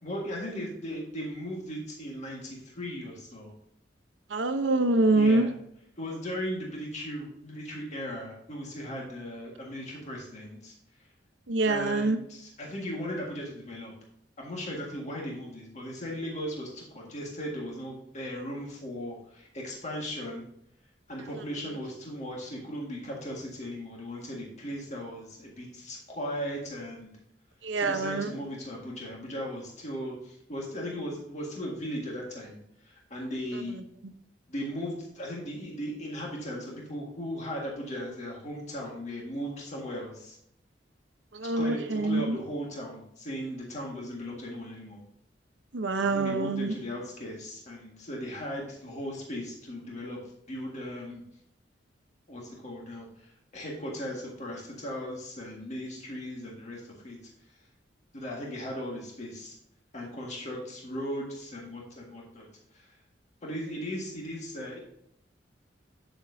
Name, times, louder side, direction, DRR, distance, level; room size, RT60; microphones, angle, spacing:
voice 1, 0.0-3.5 5.1-5.5 6.0-10.7 11.7-13.9 14.4-20.4 21.1-27.1 27.7-32.6 32.8-33.8 34.5-40.4 41.4-45.0 46.0-50.2 50.5-51.2 52.3-57.2 58.1-59.6 59.9-62.5 62.7-62.9 63.4-64.8, equal, 40° left, -2 dB, 1.8 m, -37 dB
voice 2, 4.3-5.5 11.5-12.2 27.6-28.3 33.7-33.8 41.3-42.4 45.7-46.7, right 2 dB, 85° right, 8 dB, 0.8 m, -25 dB
8.9 x 7.2 x 2.7 m, 0.74 s
head